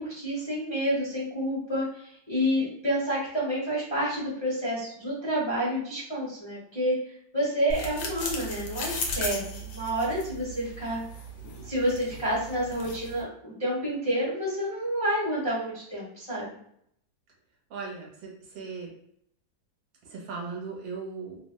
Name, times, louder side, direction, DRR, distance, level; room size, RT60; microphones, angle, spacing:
voice 1, 0.0-11.0 11.6-16.5, equal, 20° left, -7 dB, 0.9 m, -29 dB
sound 1, 7.7-13.2, left 1 dB, 85° left, 1.3 m, -36 dB
voice 2, 17.7-18.9 20.0-21.4, right 4 dB, 75° right, -2 dB, 1.4 m, -38 dB
3.4 x 2.1 x 2.2 m, 0.69 s
omnidirectional pair, 2.0 m